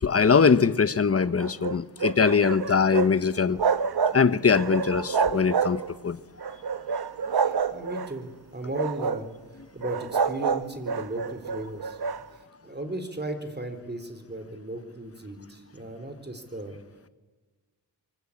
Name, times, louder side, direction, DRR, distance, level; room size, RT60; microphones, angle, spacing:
voice 1, 0.0-3.6 4.1-6.2, left 5 dB, 35° left, 15 dB, 0.9 m, -22 dB
sound 1, 1.2-3.1 3.4-4.2 4.5-6.0 6.4-8.1 8.6-9.3 9.8-12.2, right 6 dB, 60° right, 1.0 m, -28 dB
voice 2, 7.4-9.3 9.7-12.0 12.6-16.8, right 1 dB, 25° right, 8 dB, 3.7 m, -36 dB
24.5 x 23.0 x 8.6 m, 1.3 s
wide cardioid pair, 95°, 42 cm